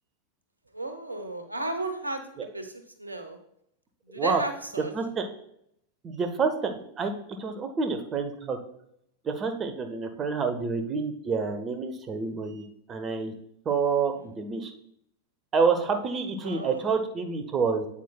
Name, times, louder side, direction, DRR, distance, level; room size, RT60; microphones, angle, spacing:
voice 1, 0.7-2.2 2.5-2.7 3.0-3.4 4.1-4.9 16.4-16.8, right 2 dB, 80° right, 8 dB, 0.9 m, -33 dB
voice 2, 4.1-4.4 4.8-5.3 6.0-7.1 7.4-8.6 9.2-13.3 13.6-14.7 15.5-17.9, right 5 dB, 25° right, 7 dB, 1.0 m, -28 dB
8.4 x 8.3 x 2.3 m, 0.74 s
figure-of-eight pair, 90°, 0 cm